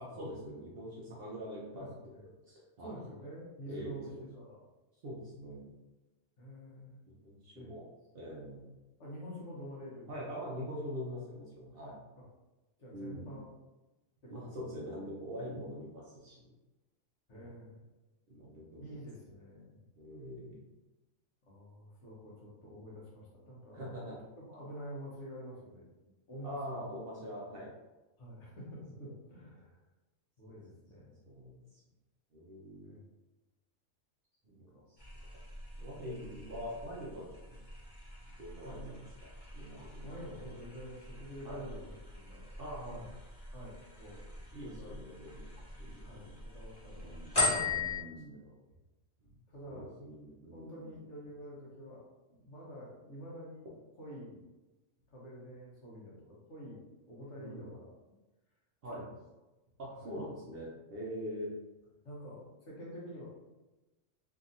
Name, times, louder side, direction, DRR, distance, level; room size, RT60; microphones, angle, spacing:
voice 1, 0.0-3.0 3.7-4.3 5.0-5.7 7.2-7.8 8.1-8.7 10.1-12.0 12.9-13.4 14.3-16.5 17.3-17.6 18.3-19.0 20.0-20.7 23.7-24.2 26.4-27.7 29.0-29.1 30.5-30.6 31.3-31.6 32.3-33.0 34.5-34.7 35.8-37.6 38.4-39.3 39.5-40.1 41.4-41.6 42.6-43.0 44.5-45.5 45.8-46.4 47.0-47.4 47.6-48.4 49.2-49.4 49.7-50.9 57.4-57.7 58.8-59.0 59.8-61.5, equal, 60° right, -4 dB, 0.7 m, -44 dB
voice 2, 1.7-2.2 2.8-4.6 6.4-7.0 7.5-7.7 9.0-10.2 12.2-12.3 12.8-13.5 14.2-14.6 17.3-17.8 18.8-19.8 21.5-24.0 24.4-25.9 26.3-26.8 28.2-29.8 30.4-31.1 32.8-33.0 34.7-34.8 38.6-38.8 39.8-42.5 42.9-43.1 43.5-44.4 44.6-45.0 46.0-47.2 47.6-48.5 49.5-49.9 50.5-52.0 52.3-53.7 54.0-54.4 55.1-56.8 57.1-58.2 58.9-59.1 59.9-60.2 62.0-63.2, equal, 65° left, -4 dB, 1.1 m, -48 dB
sound 1, 35.0-48.0, left 3 dB, 30° left, 0.4 m, -40 dB
2.9 x 2.6 x 2.5 m, 1.1 s
omnidirectional pair, 1.4 m